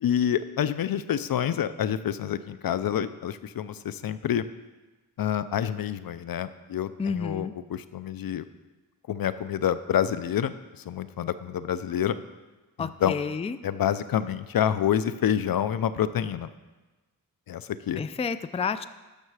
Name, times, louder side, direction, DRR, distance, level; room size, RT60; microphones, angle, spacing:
voice 1, 0.0-4.4 5.2-8.4 9.1-10.5 10.9-12.1 12.8-13.1 13.6-16.5 17.5-18.0, left 9 dB, 70° left, 14 dB, 0.6 m, -27 dB
voice 2, 7.0-7.5 12.8-13.6 18.0-18.9, left 5 dB, 20° left, 13 dB, 0.4 m, -30 dB
12.0 x 6.8 x 4.8 m, 1.2 s
cardioid pair, 80°, 37 cm